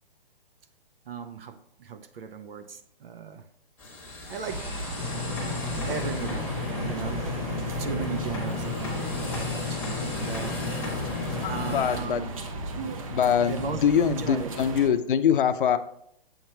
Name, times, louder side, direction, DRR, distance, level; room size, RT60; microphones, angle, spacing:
voice 1, 1.0-3.5 4.2-4.7 5.9-10.6 11.5-12.3 13.4-14.5, right 6 dB, 75° right, 10 dB, 0.8 m, -37 dB
sound 1, 3.8-12.0, left 2 dB, 5° left, 1.3 m, -37 dB
sound 2, 4.5-14.9, right 2 dB, 35° right, 0.7 m, -36 dB
sound 3, 5.0-11.9, left 4 dB, 30° left, 0.9 m, -33 dB
voice 2, 11.4-12.4 12.8-15.8, left 8 dB, 60° left, 11 dB, 0.5 m, -24 dB
7.2 x 3.0 x 4.5 m, 0.72 s
hypercardioid pair, 160°, 29 cm